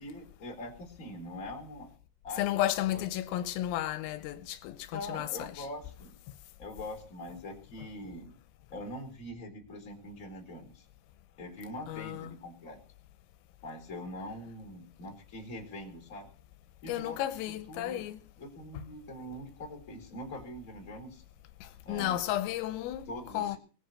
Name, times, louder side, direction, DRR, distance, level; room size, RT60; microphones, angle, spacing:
voice 1, 0.0-1.9 2.2-2.6 2.9-3.1 4.9-6.1 6.6-8.3 8.7-10.8 11.4-12.8 13.6-16.3 16.8-17.2 17.7-18.1 18.4-21.2 21.8-22.2 23.1-23.6, left 1 dB, 20° left, 3.6 m, -43 dB
voice 2, 2.4-5.7 11.9-12.4 16.9-18.2 21.9-23.1 23.3-23.6, left 13 dB, 85° left, 3.5 m, -33 dB
20.0 x 7.8 x 6.3 m
omnidirectional pair, 5.8 m